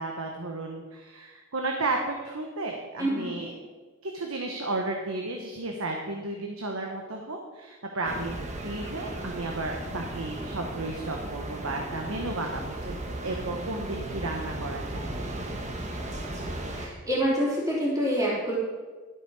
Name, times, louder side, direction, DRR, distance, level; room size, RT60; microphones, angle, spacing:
voice 1, 0.0-3.5 4.0-8.4 8.6-15.4, right 2 dB, 90° right, 2 dB, 1.2 m, -33 dB
voice 2, 3.0-3.3 16.7-18.6, equal, 15° right, -7 dB, 3.3 m, -27 dB
sound 1, 8.0-16.9, right 1 dB, 35° right, 1.3 m, -36 dB
12.5 x 8.1 x 4.9 m, 1.4 s
head